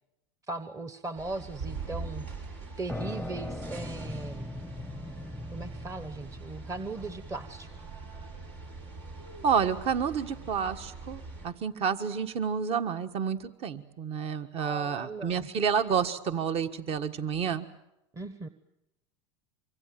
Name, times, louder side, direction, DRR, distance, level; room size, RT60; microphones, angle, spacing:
voice 1, 0.5-4.5 5.5-7.8 14.6-15.5 18.1-18.5, right 2 dB, 20° right, 11 dB, 1.2 m, -38 dB
sound 1, 1.1-11.5, right 3 dB, 75° right, 7.5 m, -43 dB
sound 2, 2.9-10.3, left 1 dB, ahead, 0.8 m, -41 dB
voice 2, 9.4-17.6, right 7 dB, 45° right, 10 dB, 1.5 m, -29 dB
25.0 x 24.5 x 7.7 m, 0.89 s
hypercardioid pair, 100°, 15 cm